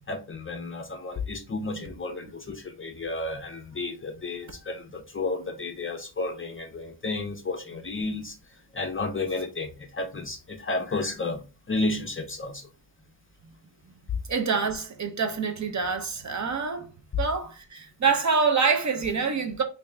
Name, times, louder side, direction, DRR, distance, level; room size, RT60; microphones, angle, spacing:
voice 1, 0.1-12.7, left 2 dB, 30° left, 0.5 m, -32 dB
voice 2, 14.3-16.9 17.2-19.6, right 5 dB, 40° right, 0.7 m, -26 dB
3.4 x 2.6 x 3.2 m
wide cardioid pair, 120°, 45 cm